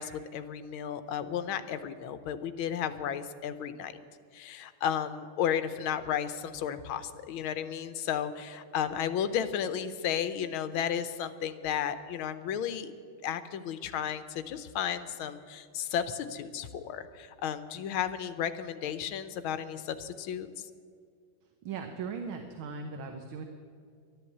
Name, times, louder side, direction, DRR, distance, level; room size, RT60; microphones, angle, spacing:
voice 1, 0.0-3.9 4.3-12.9 13.2-20.6, left 9 dB, 80° left, 11 dB, 1.6 m, -33 dB
voice 2, 21.4-23.4, right 5 dB, 75° right, 5 dB, 1.7 m, -39 dB
12.0 x 11.0 x 8.4 m, 2.2 s
omnidirectional pair, 2.3 m